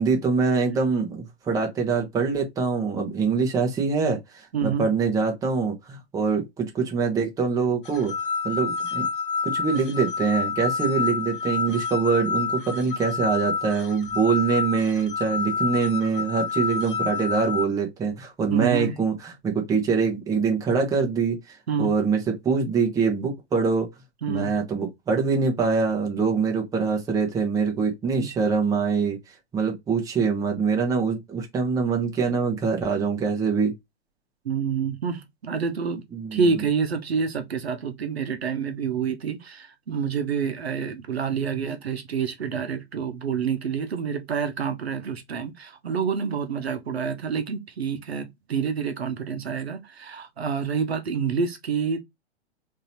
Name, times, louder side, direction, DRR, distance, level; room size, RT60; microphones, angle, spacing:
voice 1, 0.0-8.1 8.4-9.1 9.4-21.4 21.8-23.9 24.3-29.2 29.5-33.7 36.1-36.4, right 5 dB, 10° right, 0.8 m, -24 dB
voice 2, 4.5-4.9 18.5-19.0 21.7-21.9 24.2-24.5 28.2-28.3 34.4-36.0 36.3-52.0, right 6 dB, 65° right, 0.9 m, -28 dB
sound 1, 7.9-17.7, left 5 dB, 50° left, 0.7 m, -28 dB
3.8 x 2.9 x 2.9 m
figure-of-eight pair, 110°, 33 cm